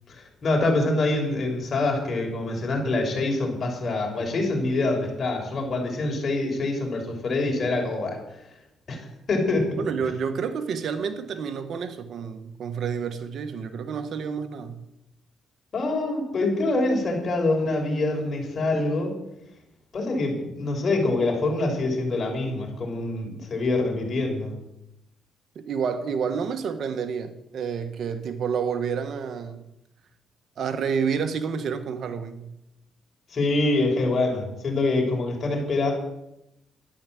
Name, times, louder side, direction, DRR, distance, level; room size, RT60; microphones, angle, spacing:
voice 1, 0.1-8.2 8.9-9.0 9.3-9.7 15.7-19.1 19.9-24.5 33.3-35.9, left 2 dB, 45° left, 6.0 m, -25 dB
voice 2, 9.8-14.8 25.5-29.6 30.6-32.5, right 6 dB, 65° right, 1.4 m, -29 dB
13.0 x 11.0 x 7.8 m
cardioid pair, 90°, 0 cm